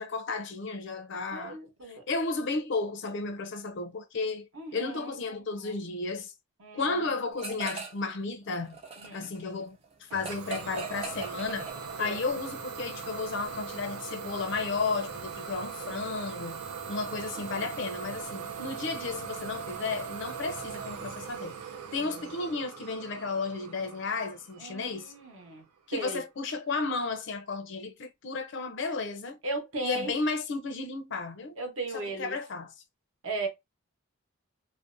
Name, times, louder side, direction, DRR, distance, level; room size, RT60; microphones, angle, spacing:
voice 1, 0.0-1.6 1.9-6.3 6.7-8.8 9.1-11.7 12.0-16.6 16.9-21.5 21.9-25.1 25.9-29.4 29.8-31.5 31.9-32.7, left 3 dB, 55° left, 0.4 m, -33 dB
voice 2, 1.3-2.0 4.5-5.7 6.6-7.0 9.0-9.2 12.0-12.2 17.4-17.5 22.0-22.1 24.6-25.6 25.9-26.2 29.4-30.1 31.6-32.4 33.2-33.5, right 2 dB, 65° right, 0.9 m, -37 dB
sound 1, 7.4-8.1 8.4-12.2, right 5 dB, 25° right, 0.4 m, -41 dB
Idling / Domestic sounds home sounds, 10.1-25.6, right 6 dB, 90° right, 0.5 m, -40 dB
2.5 x 2.1 x 2.5 m
head